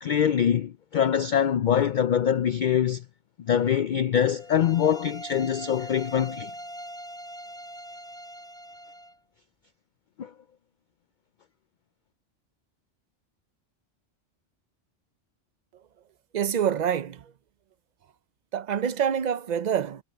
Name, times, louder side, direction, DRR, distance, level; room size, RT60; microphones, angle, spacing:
voice 1, 0.0-3.0 3.5-6.5 10.2-10.3, left 9 dB, 60° left, 0.5 m, -24 dB
sound 1, 4.4-9.2, equal, 5° left, 4.2 m, -42 dB
voice 2, 16.3-17.2 18.5-20.0, right 8 dB, 50° right, 0.5 m, -26 dB
omnidirectional pair, 1.2 m